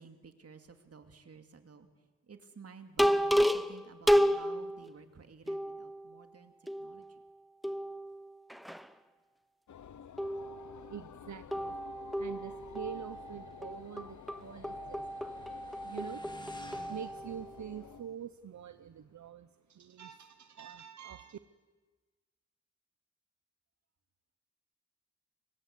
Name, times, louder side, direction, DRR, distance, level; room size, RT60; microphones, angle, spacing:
voice 1, 0.0-1.9 2.3-7.2, right 5 dB, 55° right, 7 dB, 2.4 m, -54 dB
sound 1, 3.0-4.9 5.5-6.3 6.7-7.3 7.6-8.9 10.2-11.0 11.5-17.7, equal, ahead, 0.7 m, -32 dB
sound 2, 9.7-18.0, left 8 dB, 75° left, 0.9 m, -52 dB
voice 2, 10.9-11.8 12.2-16.2 16.9-21.4, right 8 dB, 70° right, 11 dB, 0.9 m, -46 dB
Motorcycle, 11.0-19.3, left 1 dB, 15° left, 2.1 m, -58 dB
29.0 x 23.5 x 8.3 m, 1.3 s
wide cardioid pair, 135°, 30 cm